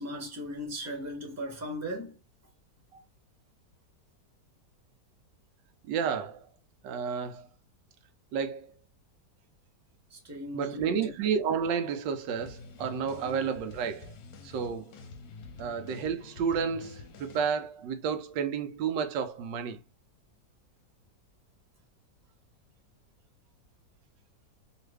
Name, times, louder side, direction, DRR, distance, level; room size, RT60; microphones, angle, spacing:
voice 1, 0.0-2.2 10.1-11.1 13.2-13.4, equal, 10° right, 0.8 m, -38 dB
voice 2, 5.9-6.5 6.8-7.5 8.3-8.7 10.5-14.1 14.4-15.0 15.6-19.8, right 6 dB, 90° right, 1.3 m, -31 dB
sound 1, 12.4-17.6, left 4 dB, 65° left, 1.1 m, -48 dB
3.1 x 2.4 x 3.3 m
omnidirectional pair, 1.9 m